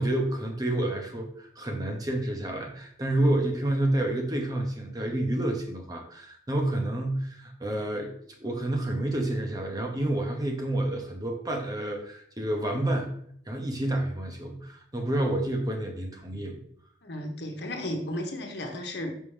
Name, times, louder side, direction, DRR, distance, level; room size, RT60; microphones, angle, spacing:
voice 1, 0.0-8.1 8.4-13.1 13.5-16.6, right 1 dB, 20° right, 2 dB, 0.9 m, -29 dB
voice 2, 17.0-19.1, left 1 dB, 70° left, 2 dB, 1.2 m, -34 dB
5.8 x 5.4 x 3.3 m, 0.65 s
head